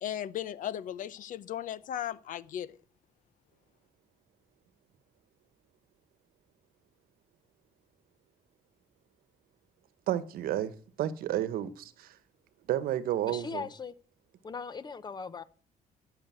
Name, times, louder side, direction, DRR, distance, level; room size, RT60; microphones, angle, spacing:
voice 1, 0.0-2.8, left 11 dB, 60° left, 0.8 m, -36 dB
voice 2, 10.1-12.2 12.7-13.6, right 12 dB, 75° right, 1.2 m, -31 dB
voice 3, 13.3-13.9 14.4-15.4, left 5 dB, 30° left, 0.9 m, -39 dB
13.5 x 6.8 x 8.3 m
cardioid pair, 130°, 15 cm